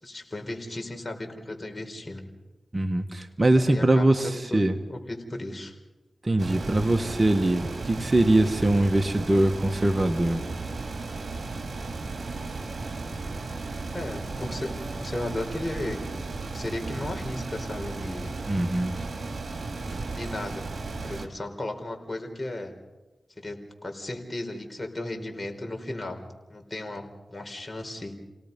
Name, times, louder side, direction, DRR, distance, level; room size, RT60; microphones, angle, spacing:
voice 1, 0.0-2.2 3.7-4.0 4.5-4.6 4.9-5.7 13.9-16.0 16.5-18.3 19.8-20.7 21.0-22.7 23.4-23.6 23.8-26.2 26.5-28.1, left 1 dB, 30° left, 3 dB, 4.3 m, -35 dB
voice 2, 2.7-4.8 6.2-10.4 18.5-18.9, right 1 dB, 30° right, 4 dB, 1.6 m, -22 dB
sound 1, 6.4-21.3, right 3 dB, 60° right, 2.4 m, -35 dB
29.0 x 18.0 x 5.4 m, 1.1 s
cardioid pair, 45°, 0 cm